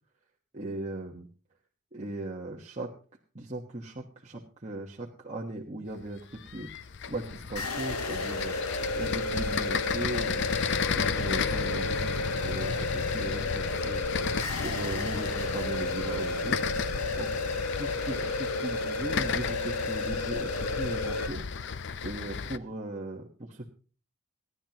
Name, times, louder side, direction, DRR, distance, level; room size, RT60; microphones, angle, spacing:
voice 1, 0.5-1.2 1.9-2.9 3.3-6.7 7.1-8.5 8.9-10.5 10.9-14.0 14.6-16.6 17.2-17.3 17.8-21.5 22.0-23.6, right 2 dB, 30° right, -2 dB, 1.2 m, -38 dB
sound 1, 6.0-22.6, left 6 dB, 55° left, 0.6 m, -34 dB
sound 2, 7.6-21.3, left 2 dB, 85° left, 1.4 m, -32 dB
26.5 x 10.5 x 2.9 m, 0.39 s
head